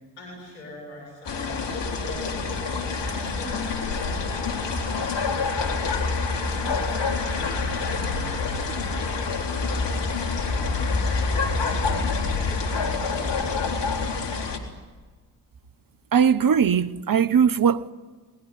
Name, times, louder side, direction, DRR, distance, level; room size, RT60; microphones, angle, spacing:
voice 1, 0.2-2.3 3.0-5.4 6.4-10.8 11.5-12.2 12.6-13.9, left 1 dB, 80° left, 7.9 m, -43 dB
sound 1, 1.2-14.6, left 4 dB, 55° left, 3.9 m, -26 dB
voice 2, 16.1-17.9, right 7 dB, 40° right, 1.3 m, -20 dB
27.5 x 20.5 x 9.9 m
hypercardioid pair, 40°, 49 cm